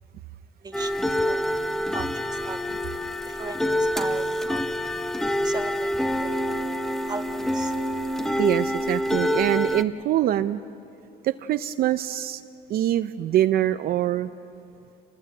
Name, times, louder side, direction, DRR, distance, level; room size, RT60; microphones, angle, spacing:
voice 1, 0.6-1.0 1.2-1.5 1.9-2.6 3.3-3.7 3.9-4.8 5.4-5.9 6.2-6.4 7.0-7.3 7.5-7.7, right 4 dB, 25° right, 7 dB, 1.3 m, -36 dB
sound 1, 0.7-9.8, equal, ahead, 1.0 m, -26 dB
voice 2, 8.4-10.6 11.2-12.4 12.7-14.3, right 12 dB, 65° right, 10 dB, 0.6 m, -24 dB
27.0 x 20.0 x 8.5 m, 2.8 s
cardioid pair, 110°, 17 cm